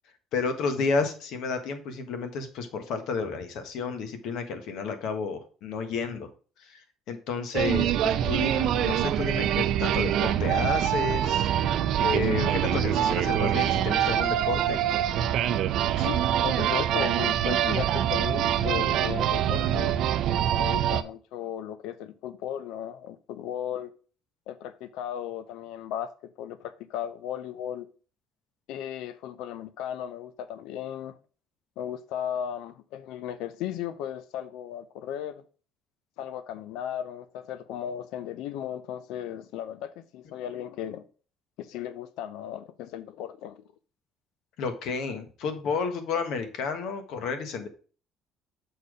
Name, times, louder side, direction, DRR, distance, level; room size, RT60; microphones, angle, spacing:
voice 1, 0.3-6.3 6.6-6.8 7.1-14.8 44.6-47.7, left 4 dB, 65° left, 1.4 m, -31 dB
sound 1, 7.5-21.0, right 10 dB, 55° right, 0.5 m, -25 dB
voice 2, 16.0-20.0 20.6-23.9 24.5-27.9 28.7-31.1 31.8-35.4 36.2-41.0 41.6-43.6, left 10 dB, 80° left, 0.6 m, -36 dB
6.8 x 4.3 x 4.9 m
cardioid pair, 165°, 0 cm